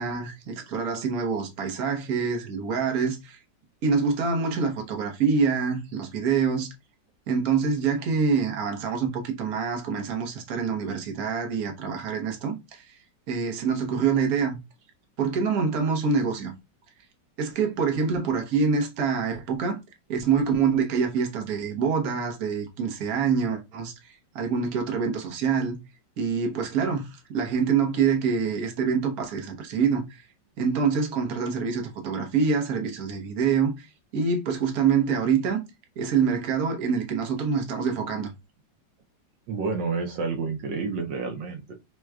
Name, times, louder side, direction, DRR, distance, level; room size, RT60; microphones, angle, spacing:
voice 1, 0.0-3.4 3.8-6.7 7.3-13.0 13.3-14.6 15.2-16.5 17.4-19.8 20.1-25.8 26.2-30.3 30.6-33.9 34.1-35.6 36.0-38.3, right 6 dB, 60° right, 1.3 m, -26 dB
voice 2, 39.5-41.7, right 4 dB, 75° right, 1.4 m, -29 dB
6.1 x 2.2 x 2.3 m
omnidirectional pair, 2.0 m